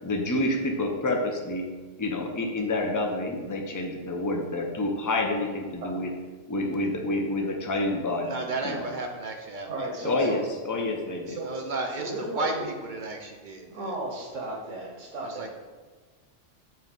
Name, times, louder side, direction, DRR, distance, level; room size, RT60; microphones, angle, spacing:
voice 1, 0.0-1.7 2.0-6.1 6.5-8.3 8.6-8.8 10.0-10.4 10.6-11.4, left 2 dB, 20° left, 2 dB, 0.6 m, -28 dB
voice 2, 8.2-9.9 10.2-10.3 11.4-13.7 15.2-15.5, right 3 dB, 50° right, 3 dB, 0.7 m, -33 dB
voice 3, 9.7-10.4 11.3-12.6 13.7-15.5, right 2 dB, 90° right, -1 dB, 1.4 m, -35 dB
7.7 x 3.2 x 5.3 m, 1.4 s
omnidirectional pair, 1.3 m